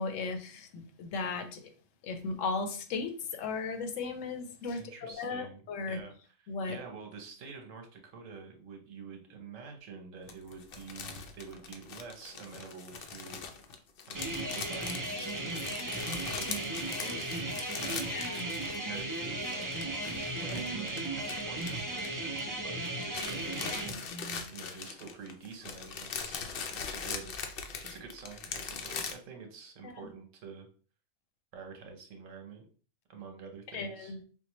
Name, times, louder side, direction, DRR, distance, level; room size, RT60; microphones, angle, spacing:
voice 1, 0.0-1.6 2.0-6.0 6.5-6.8 18.1-18.5 24.1-24.4 29.8-29.9 33.7-34.2, left 4 dB, 80° left, 7 dB, 1.0 m, -36 dB
voice 2, 4.8-5.6 5.9-13.4 14.1-18.3 18.7-23.8 24.5-30.7 31.5-32.7 33.1-34.2, right 5 dB, 75° right, 4 dB, 1.2 m, -48 dB
sound 1, 10.3-19.0 19.2-22.6 22.8-29.1, left 6 dB, 65° left, 0.6 m, -41 dB
sound 2, 14.1-23.9, right 2 dB, 35° right, 0.3 m, -36 dB
Piano, 20.5-22.7, right 5 dB, 55° right, 0.8 m, -48 dB
4.4 x 2.1 x 3.0 m, 0.40 s
omnidirectional pair, 1.3 m